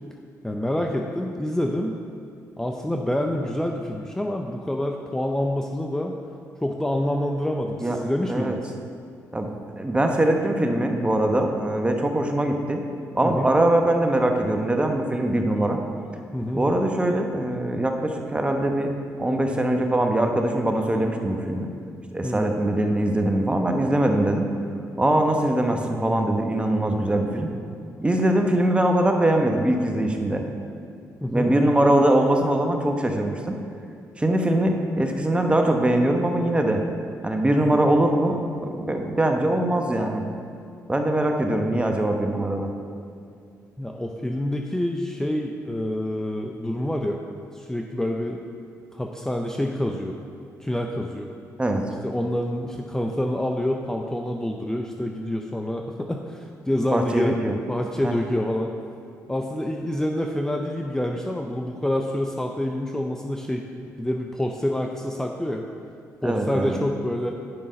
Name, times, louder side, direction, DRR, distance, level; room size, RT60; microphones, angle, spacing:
voice 1, 0.4-2.0 2.6-6.1 6.6-8.7 13.2-13.5 16.3-16.7 22.2-22.5 31.2-31.5 37.6-37.8 43.8-47.2 47.5-48.4 48.9-50.1 50.6-51.3 52.0-57.3 57.7-58.7 59.3-63.6 64.0-65.6 66.2-67.3, left 1 dB, 10° left, 2 dB, 0.6 m, -27 dB
voice 2, 9.3-12.8 13.1-15.8 16.5-18.9 19.2-21.7 22.1-24.4 25.0-27.5 28.0-30.4 31.3-33.5 34.2-36.8 37.2-40.2 40.9-42.7 51.6-51.8 56.9-57.5 58.0-58.2 66.2-66.8, right 1 dB, 15° right, 3 dB, 1.0 m, -22 dB
8.9 x 5.4 x 5.3 m, 2.4 s
supercardioid pair, 65°, 7 cm